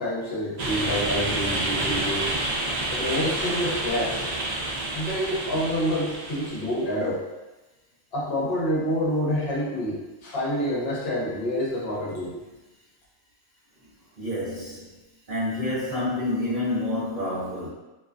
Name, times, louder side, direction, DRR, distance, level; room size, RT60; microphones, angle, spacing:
voice 1, 0.0-2.3 2.9-4.3 4.9-7.2 8.1-12.4, equal, 55° left, -5 dB, 0.9 m, -27 dB
sound 1, 0.6-6.8, right 2 dB, 85° right, 0.3 m, -29 dB
voice 2, 14.2-14.9 15.3-17.7, left 1 dB, 45° right, -10 dB, 0.7 m, -28 dB
2.4 x 2.2 x 2.4 m, 1.1 s
omnidirectional pair, 1.3 m